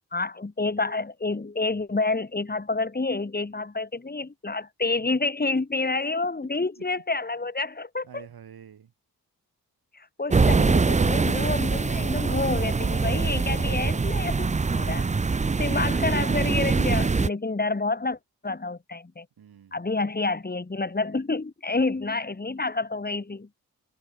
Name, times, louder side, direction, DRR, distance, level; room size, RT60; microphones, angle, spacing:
voice 1, 0.1-8.2 9.9-15.1 15.6-18.2 18.4-19.2 19.7-23.5, left 3 dB, 25° left, 3.0 m, -28 dB
voice 2, 6.4-6.9 8.0-8.9 19.4-19.8 21.9-22.1, right 8 dB, 80° right, 6.3 m, -49 dB
sound 1, 10.3-17.3, right 4 dB, 20° right, 0.6 m, -23 dB
cardioid pair, 60°, 36 cm